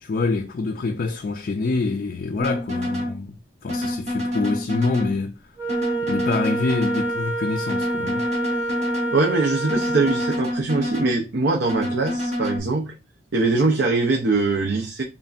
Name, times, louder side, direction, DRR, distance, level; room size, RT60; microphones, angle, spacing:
voice 1, 0.0-3.4 3.6-5.4 6.0-8.2, left 3 dB, 50° left, 0.4 m, -26 dB
sound 1, 2.4-3.2 3.7-5.2 5.7-7.2 7.7-9.2 9.7-11.2 11.7-12.6, left 1 dB, 35° right, 1.3 m, -27 dB
Wind instrument woodwind instrument, 5.6-10.5, right 2 dB, 10° right, 1.0 m, -28 dB
voice 2, 9.1-12.9 13.3-15.0, right 3 dB, 70° right, 0.6 m, -22 dB
5.3 x 2.5 x 2.5 m
head